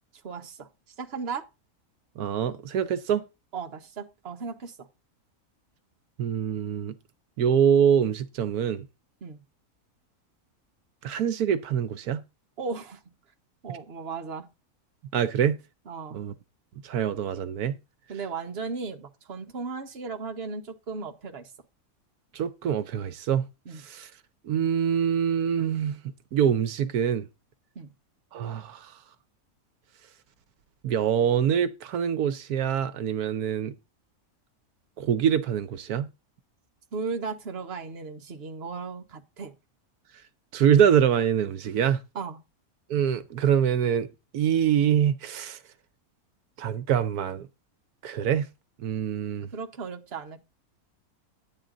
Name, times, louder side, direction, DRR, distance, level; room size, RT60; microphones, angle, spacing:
voice 1, 0.2-0.7 1.0-1.4 3.5-4.7 9.2-9.4 12.6-13.0 13.6-14.5 15.9-16.2 18.1-21.5 23.6-23.8 27.7-27.9 36.9-39.5 42.1-42.4 49.5-50.4, right 4 dB, 45° right, 1.3 m, -36 dB
voice 2, 2.2-3.2 6.2-6.9 7.4-8.8 11.0-12.2 15.1-15.6 16.1-16.3 16.8-17.7 22.3-23.4 23.8-24.1 24.4-26.0 26.3-27.3 28.3-28.9 30.8-33.7 35.0-36.1 40.5-42.0 42.9-44.1 44.3-45.6 46.6-47.5 48.0-48.5 48.8-49.5, right 8 dB, 80° right, 1.3 m, -24 dB
10.5 x 8.9 x 3.8 m
omnidirectional pair, 1.6 m